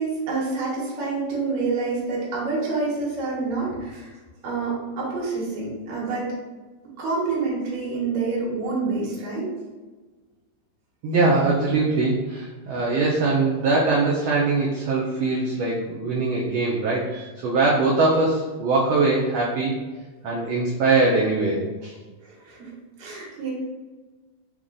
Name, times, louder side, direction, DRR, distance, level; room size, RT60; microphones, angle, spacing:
voice 1, 0.0-4.1 4.4-6.3 7.0-9.5 22.2-22.7 23.0-23.5, right 4 dB, 70° right, -5 dB, 2.6 m, -27 dB
voice 2, 11.0-19.7 20.2-21.9, right 3 dB, 90° right, -3 dB, 1.4 m, -22 dB
5.3 x 3.0 x 2.5 m, 1.3 s
omnidirectional pair, 3.6 m